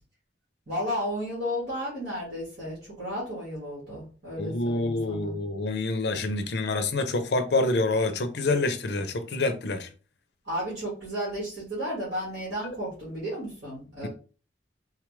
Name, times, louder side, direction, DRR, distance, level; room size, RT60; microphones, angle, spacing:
voice 1, 0.7-5.4 10.4-14.1, equal, 65° right, 1.8 m, -33 dB
voice 2, 4.4-9.9 12.6-12.7, left 2 dB, 65° left, 0.5 m, -27 dB
3.6 x 2.4 x 3.1 m
head